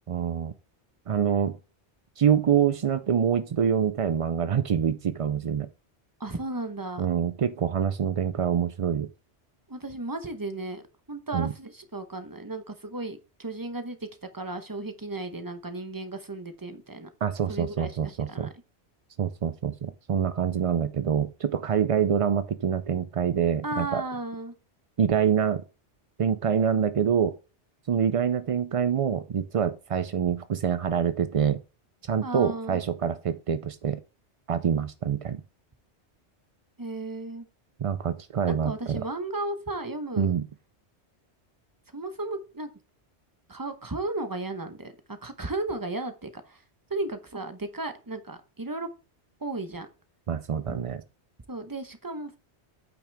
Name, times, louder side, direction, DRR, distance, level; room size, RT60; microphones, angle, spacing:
voice 1, 0.1-0.5 1.1-1.6 2.2-5.7 7.0-9.1 11.3-11.5 17.2-18.5 19.2-24.0 25.0-25.6 26.2-27.4 27.9-31.6 32.0-34.0 34.5-35.4 37.8-39.0 40.2-40.5 50.3-51.0, right 8 dB, 65° right, 0.3 m, -26 dB
voice 2, 6.2-7.1 9.7-10.8 11.1-14.0 14.3-17.1 17.5-18.5 23.6-24.5 32.2-32.8 36.8-37.5 38.6-40.3 41.9-42.7 43.5-46.6 46.9-48.9 49.4-49.9 51.5-52.4, right 2 dB, 20° right, 0.9 m, -34 dB
8.6 x 6.0 x 3.4 m
omnidirectional pair, 1.2 m